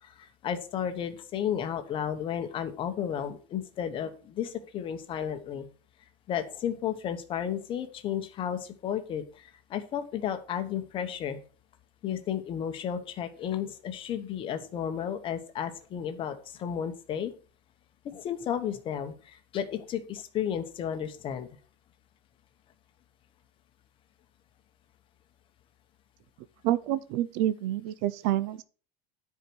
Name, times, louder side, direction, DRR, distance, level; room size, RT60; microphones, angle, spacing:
voice 1, 0.0-5.7 6.3-11.4 12.0-17.3 18.0-21.5, left 9 dB, 25° left, 1.0 m, -33 dB
voice 2, 26.6-28.6, right 13 dB, 50° right, 0.5 m, -28 dB
10.0 x 4.7 x 6.1 m
supercardioid pair, 175°, 20 cm